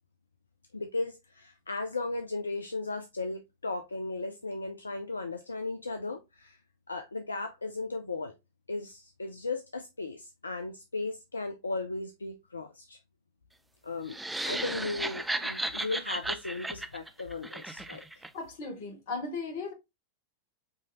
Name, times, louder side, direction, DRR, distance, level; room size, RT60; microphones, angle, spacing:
voice 1, 0.7-6.6 6.9-8.3 8.7-13.0 13.8-14.2 14.4-18.0, left 3 dB, 75° left, 0.4 m, -36 dB
sound 1, 14.1-18.3, right 2 dB, 5° right, 0.3 m, -35 dB
voice 2, 18.3-19.7, left 3 dB, 55° left, 1.4 m, -36 dB
4.7 x 2.8 x 2.8 m
figure-of-eight pair, 90°, 0 cm